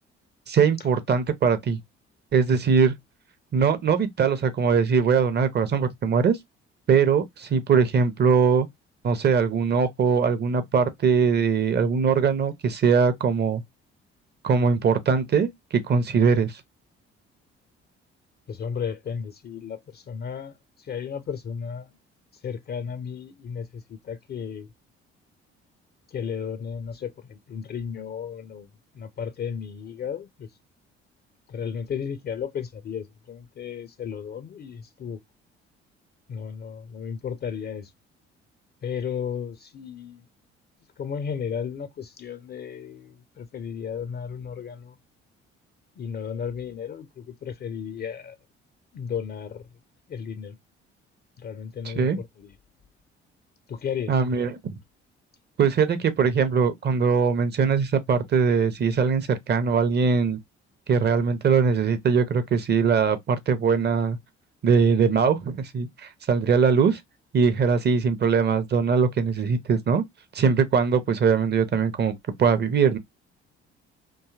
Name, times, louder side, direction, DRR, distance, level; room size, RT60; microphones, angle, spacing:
voice 1, 0.5-1.8 2.3-2.9 3.5-6.4 6.9-8.7 9.0-13.6 14.4-16.5 52.0-52.2 54.1-54.6 55.6-60.4 60.9-64.2 64.6-67.0 67.3-70.0 70.3-72.1 72.4-73.0, right 6 dB, 30° right, 0.6 m, -21 dB
voice 2, 18.5-21.9 22.4-24.7 26.1-28.7 28.9-30.5 31.5-35.2 36.3-37.9 38.8-40.3 41.0-45.0 46.0-48.4 48.9-49.7 50.1-50.6 51.4-52.6 53.7-54.2, left 7 dB, 30° left, 0.4 m, -34 dB
2.6 x 2.3 x 2.3 m
figure-of-eight pair, 45°, 32 cm